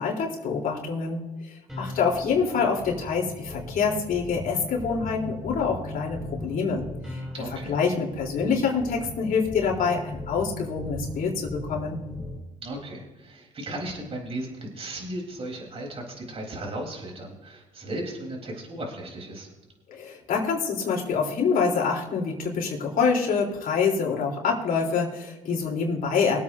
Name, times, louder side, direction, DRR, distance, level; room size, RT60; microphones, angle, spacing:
voice 1, 0.0-7.2 7.7-12.0 19.9-26.4, left 5 dB, 60° left, -2 dB, 3.5 m, -26 dB
sound 1, 1.7-12.4, left 2 dB, 5° right, 3.1 m, -38 dB
voice 2, 7.3-7.8 12.6-19.5, right 1 dB, 35° right, -1 dB, 3.8 m, -36 dB
23.5 x 8.6 x 2.7 m, 1.2 s
cardioid pair, 105°, 17 cm